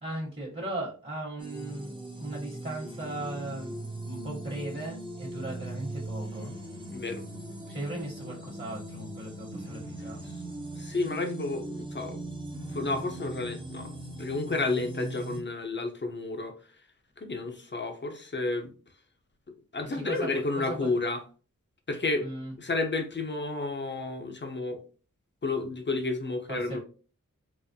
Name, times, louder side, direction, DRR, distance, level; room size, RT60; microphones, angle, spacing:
voice 1, 0.0-6.5 7.7-10.2 19.9-20.9 22.2-22.5 26.5-26.8, right 1 dB, 35° right, -3 dB, 1.3 m, -37 dB
sound 1, 1.4-15.4, right 1 dB, 15° right, 0.7 m, -40 dB
voice 2, 6.9-7.2 10.2-10.4 10.8-12.2 12.7-13.9 14.2-16.6 17.2-18.7 19.7-21.2 21.9-22.2 22.6-24.8 25.4-26.8, left 3 dB, 35° left, 5 dB, 0.7 m, -31 dB
4.1 x 2.0 x 2.7 m, 0.37 s
wide cardioid pair, 45°, 31 cm